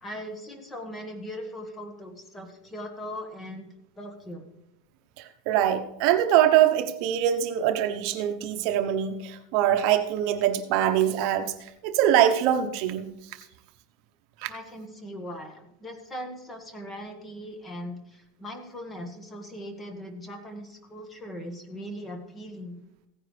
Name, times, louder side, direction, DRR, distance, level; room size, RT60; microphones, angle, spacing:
voice 1, 0.0-3.7 4.0-4.5 14.5-22.8, equal, 15° left, 5 dB, 1.7 m, -39 dB
voice 2, 5.2-13.5 14.4-14.5, right 11 dB, 55° right, 7 dB, 0.9 m, -24 dB
16.0 x 9.9 x 3.3 m, 0.85 s
supercardioid pair, 160°, 0 cm